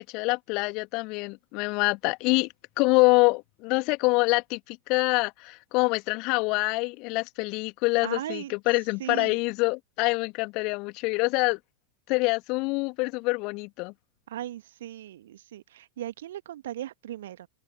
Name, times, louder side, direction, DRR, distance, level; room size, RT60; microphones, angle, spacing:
voice 1, 0.0-2.5 2.8-11.6 12.1-13.9, left 27 dB, 40° left, 2.6 m, -25 dB
voice 2, 8.0-8.5 9.0-9.4 14.3-17.5, right 12 dB, 60° right, 1.6 m, -37 dB
open air
figure-of-eight pair, 90°, 0 cm